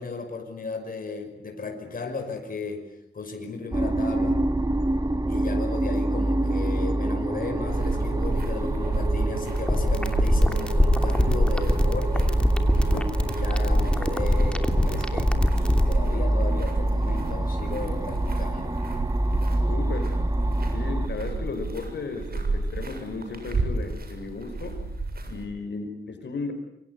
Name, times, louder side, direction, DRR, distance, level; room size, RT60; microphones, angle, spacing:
voice 1, 0.0-2.8 3.1-4.4 5.3-12.4 12.9-13.0 13.4-18.8, left 3 dB, 55° left, 4 dB, 5.7 m, -35 dB
sound 1, 3.7-21.1, right 1 dB, 20° right, 1.9 m, -26 dB
sound 2, 7.7-25.4, right 3 dB, 60° right, 7.1 m, -31 dB
sound 3, 9.6-15.9, left 1 dB, 5° left, 2.8 m, -22 dB
voice 2, 19.7-20.1 20.7-24.8 25.3-26.5, left 4 dB, 85° left, 6 dB, 5.1 m, -34 dB
27.5 x 24.5 x 8.2 m, 0.76 s
wide cardioid pair, 135°, 18 cm